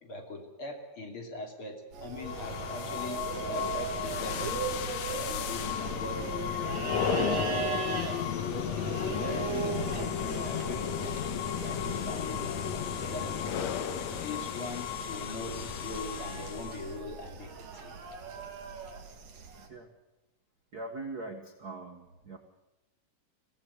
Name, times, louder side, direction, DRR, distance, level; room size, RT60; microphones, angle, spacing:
voice 1, 0.0-3.2 3.5-6.3 7.1-7.8 8.4-11.2 11.6-13.3 14.2-17.9, left 2 dB, 40° left, 3 dB, 3.6 m, -41 dB
sound 1, 1.9-19.7, right 5 dB, 55° right, 3.3 m, -38 dB
sound 2, 2.2-17.0, left 8 dB, 65° left, 2.2 m, -34 dB
voice 2, 19.6-19.9 20.7-22.4, right 2 dB, 40° right, 4 dB, 1.5 m, -41 dB
23.5 x 16.5 x 8.3 m, 0.96 s
omnidirectional pair, 3.7 m